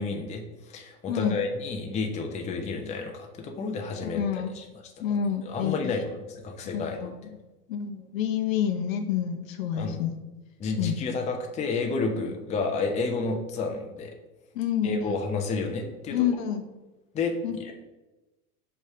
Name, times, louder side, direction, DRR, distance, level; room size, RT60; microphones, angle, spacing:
voice 1, 0.0-4.2 4.5-4.6 5.4-7.0 9.7-10.0 10.6-14.1 14.8-16.3 17.1-17.7, left 4 dB, 15° left, 3 dB, 0.6 m, -30 dB
voice 2, 4.0-4.5 5.0-5.9 6.7-7.1 7.7-10.1 10.8-11.0 14.5-15.2 16.1-16.6 17.4-17.6, left 8 dB, 55° left, 7 dB, 0.8 m, -28 dB
5.2 x 3.6 x 5.6 m, 1.1 s
figure-of-eight pair, 85°, 47 cm